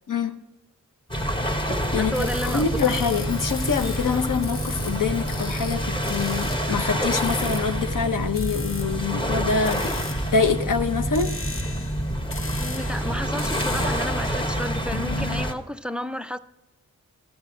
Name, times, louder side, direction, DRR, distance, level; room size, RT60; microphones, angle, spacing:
voice 1, 0.1-0.4 1.9-10.0 10.3-11.4, left 5 dB, 85° left, 7 dB, 0.8 m, -25 dB
sound 1, 1.1-15.5, equal, 15° left, 1.0 m, -27 dB
voice 2, 1.9-2.7 12.6-16.4, left 1 dB, 5° right, 13 dB, 0.3 m, -31 dB
sound 2, 2.1-15.4, left 3 dB, 45° left, 0.9 m, -38 dB
Chime, 3.3-7.2 7.5-8.1 8.4-8.5, left 3 dB, 70° left, 1.5 m, -48 dB
13.5 x 7.9 x 3.8 m, 1.0 s
wide cardioid pair, 120°, 31 cm